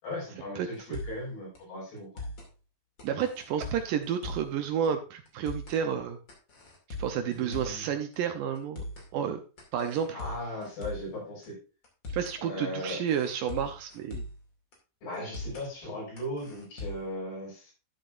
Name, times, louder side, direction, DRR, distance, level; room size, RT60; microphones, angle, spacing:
voice 1, 0.0-2.1 7.1-7.9 10.1-11.6 12.4-13.0 15.0-17.7, left 1 dB, 80° left, -3 dB, 8.3 m, -37 dB
voice 2, 0.6-1.0 3.0-6.2 7.0-8.8 9.1-9.4 9.7-10.2 12.1-14.2, right 8 dB, 75° right, 7 dB, 2.2 m, -31 dB
sound 1, 0.7-1.3 1.5-1.6 2.0-2.5 3.0-4.6 4.8-4.9 5.3-5.8 6.3-7.8 8.1-8.2 8.5-9.1 9.6-11.1 11.4-11.5 11.8-12.4 12.9-14.4 14.7-14.8 15.1-15.7 16.2-17.1, left 2 dB, 30° left, 2.7 m, -40 dB
12.5 x 7.7 x 2.5 m, 0.33 s
omnidirectional pair, 4.5 m